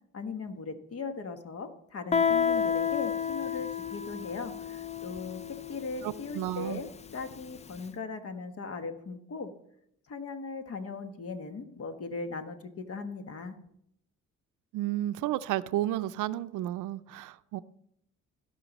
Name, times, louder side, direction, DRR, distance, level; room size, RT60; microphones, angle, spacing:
voice 1, 0.1-5.4 5.7-9.5 10.1-13.6, left 4 dB, 50° left, 1.3 m, -39 dB
Guitar, 2.1-7.6, left 7 dB, 25° left, 0.4 m, -31 dB
voice 2, 6.0-6.8 14.7-17.6, right 14 dB, 85° right, 0.5 m, -32 dB
16.0 x 5.7 x 4.1 m
cardioid pair, 90°, 30 cm